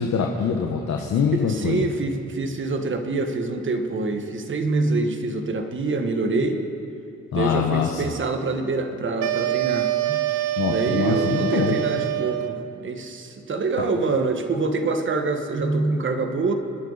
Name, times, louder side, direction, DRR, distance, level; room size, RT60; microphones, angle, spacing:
voice 1, 0.0-1.8 7.3-8.0 10.6-11.8 13.8-13.9, left 6 dB, 65° left, 1 dB, 1.3 m, -24 dB
voice 2, 1.3-6.6 7.3-10.2 10.7-16.5, right 3 dB, 40° right, 6 dB, 1.6 m, -25 dB
sound 1, 9.2-12.7, right 14 dB, 80° right, 0.6 m, -25 dB
29.0 x 10.0 x 4.2 m, 2.6 s
cardioid pair, 90°, 30 cm